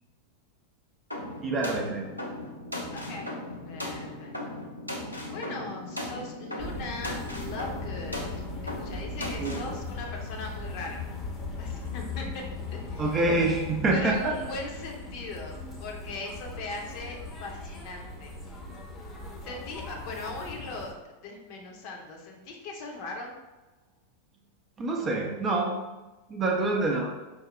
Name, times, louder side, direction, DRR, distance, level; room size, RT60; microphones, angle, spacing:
sound 1, 1.1-9.7, left 1 dB, 90° right, 0.5 m, -37 dB
voice 1, 1.4-2.1 9.4-9.6 13.0-14.4 24.8-25.8 26.3-27.1, right 2 dB, 25° right, 1 dB, 0.5 m, -26 dB
voice 2, 2.9-3.4 3.6-4.3 5.3-8.3 8.8-11.0 11.6-12.4 12.7-13.1 13.9-18.3 19.4-21.0 21.2-23.3, left 2 dB, 45° left, 1 dB, 0.7 m, -39 dB
sound 2, 6.6-20.9, left 3 dB, 15° left, 0.8 m, -39 dB
5.2 x 2.1 x 3.0 m, 1.1 s
figure-of-eight pair, 90°, 0 cm